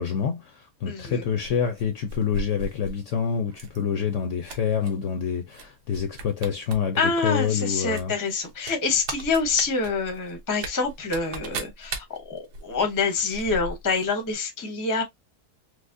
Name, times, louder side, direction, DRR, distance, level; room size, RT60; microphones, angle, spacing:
voice 1, 0.0-8.1, left 7 dB, 65° left, 0.7 m, -27 dB
voice 2, 0.8-1.2 7.0-15.0, left 4 dB, 20° left, 0.5 m, -26 dB
sound 1, 1.4-3.0 3.5-3.8 4.1-4.9 5.5-5.7 5.9-6.8 7.1-7.2 7.9-14.1 14.3-14.4, right 3 dB, 85° right, 1.4 m, -37 dB
4.7 x 2.0 x 2.5 m
omnidirectional pair, 1.7 m